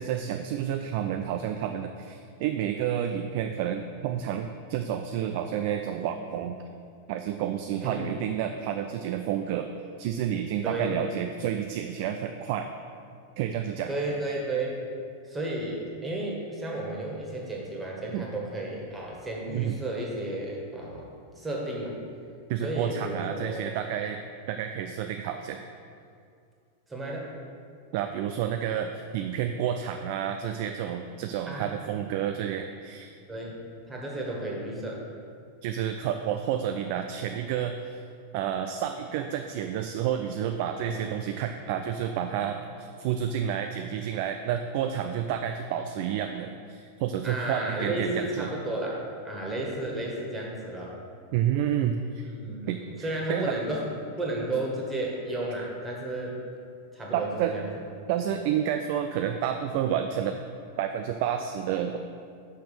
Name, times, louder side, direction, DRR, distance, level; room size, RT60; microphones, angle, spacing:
voice 1, 0.0-6.6 7.1-9.7 10.0-12.7 13.4-14.0 18.1-18.3 19.5-19.8 22.5-24.2 24.5-25.6 27.9-33.1 35.6-37.8 38.3-48.5 51.3-52.2 52.7-53.5 57.1-57.6 58.1-60.4 60.8-62.0, right 9 dB, 50° right, 6 dB, 0.3 m, -30 dB
voice 2, 7.8-8.1 10.6-11.0 13.9-14.8 15.2-21.1 21.3-22.0 22.6-23.6 26.9-27.3 31.5-31.7 33.3-33.6 33.8-35.0 40.8-41.1 47.2-49.0 49.2-51.0 52.2-53.9 54.2-56.4 56.9-57.7, right 1 dB, 15° right, -2 dB, 1.7 m, -33 dB
5.8 x 5.2 x 6.5 m, 2.3 s
figure-of-eight pair, 90°, 0 cm